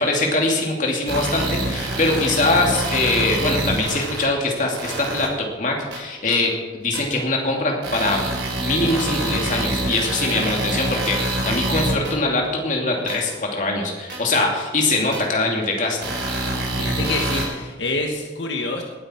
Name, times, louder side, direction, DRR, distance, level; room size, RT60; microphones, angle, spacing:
voice 1, 0.0-8.3 8.6-16.1, left 2 dB, 45° left, 0 dB, 2.6 m, -22 dB
sound 1, 1.1-4.2 4.8-5.3 5.9-6.0 6.9-7.0 7.8-12.1 13.1-13.2 14.1-14.2 15.1-15.2 16.0-17.5, right 1 dB, 80° right, 4.1 m, -25 dB
voice 2, 16.8-18.8, left 2 dB, 85° left, 2 dB, 1.4 m, -26 dB
18.5 x 9.1 x 4.5 m, 1.3 s
head